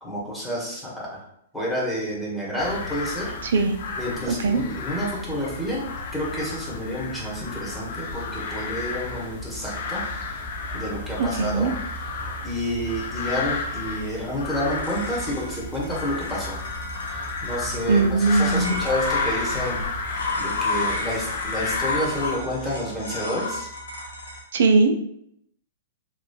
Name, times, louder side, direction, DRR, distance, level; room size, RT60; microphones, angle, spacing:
voice 1, 0.0-1.2 1.5-3.3 3.9-10.0 10.7-11.8 12.4-16.6 17.4-19.8 20.4-23.7, equal, ahead, -6 dB, 1.1 m, -29 dB
sound 1, 2.6-22.4, left 4 dB, 60° left, 0.5 m, -32 dB
voice 2, 3.4-3.7 4.3-4.6 11.4-11.7 17.9-18.8 24.5-24.9, right 3 dB, 65° right, 6 dB, 0.4 m, -20 dB
sound 2, 9.8-24.4, left 1 dB, 75° left, 0.9 m, -33 dB
3.1 x 2.3 x 2.3 m, 0.72 s
hypercardioid pair, 115°, 0 cm